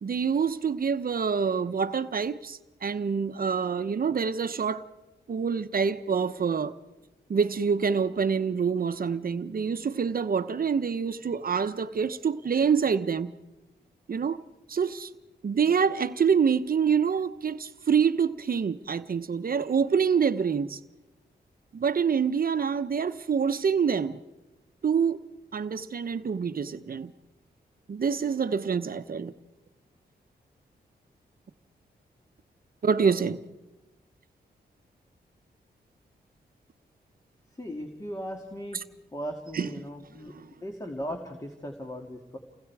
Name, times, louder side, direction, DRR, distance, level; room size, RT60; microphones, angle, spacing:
voice 1, 0.0-4.8 5.3-6.7 7.3-13.3 14.1-14.4 14.7-15.1 15.4-20.8 21.7-24.2 24.8-25.2 25.5-27.1 27.9-29.3 32.8-33.4 39.5-39.8 40.3-40.5, right 6 dB, 55° right, 1.0 m, -26 dB
voice 2, 37.6-38.8 39.1-40.3 40.6-42.4, equal, 20° left, 2.5 m, -37 dB
29.5 x 20.0 x 4.8 m
cardioid pair, 65°, 18 cm